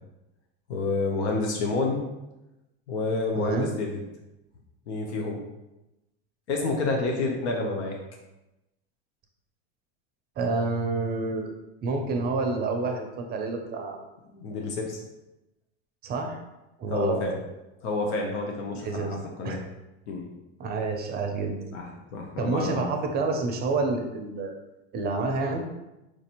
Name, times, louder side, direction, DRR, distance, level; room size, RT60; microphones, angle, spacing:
voice 1, 0.7-2.0 2.9-4.0 4.9-5.4 6.5-7.9 14.3-15.0 16.9-17.4 17.8-19.6 20.1-20.3 21.7-22.9, left 3 dB, 85° left, 0 dB, 0.7 m, -29 dB
voice 2, 3.3-3.7 10.4-11.5 11.8-14.0 16.0-16.4 16.8-17.2 18.8-19.2 19.4-19.6 20.6-21.6 22.4-24.5 24.9-25.6, right 3 dB, 30° right, 4 dB, 0.5 m, -28 dB
4.6 x 2.5 x 2.9 m, 0.96 s
supercardioid pair, 120°, 32 cm